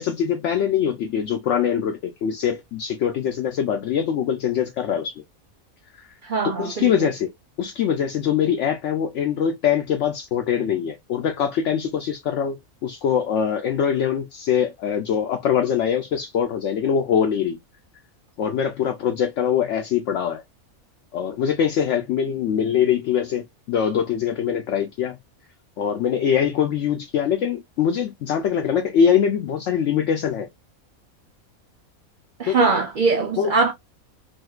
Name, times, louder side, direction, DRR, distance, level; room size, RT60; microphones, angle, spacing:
voice 1, 0.0-5.1 6.0-6.1 6.6-7.3 7.6-17.6 18.4-20.4 21.1-25.2 25.8-30.5 32.5-32.7 33.4-33.5, left 8 dB, 65° left, 0.8 m, -23 dB
voice 2, 6.2-7.1 32.4-33.7, right 4 dB, 60° right, 0.5 m, -22 dB
3.5 x 2.6 x 2.3 m
omnidirectional pair, 1.5 m